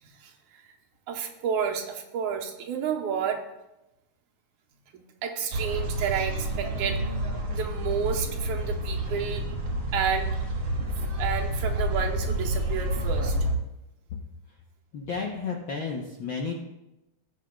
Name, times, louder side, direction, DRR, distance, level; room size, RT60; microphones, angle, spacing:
voice 1, 0.0-0.7 1.1-3.4 4.9-7.0 7.5-9.5 9.9-10.3 11.2-13.4, right 7 dB, 80° right, 2 dB, 2.4 m, -31 dB
sound 1, 5.5-13.5, right 1 dB, 50° right, 2.0 m, -29 dB
voice 2, 14.9-16.6, left 4 dB, 65° left, -1 dB, 1.2 m, -32 dB
18.0 x 8.1 x 2.3 m, 0.94 s
omnidirectional pair, 3.4 m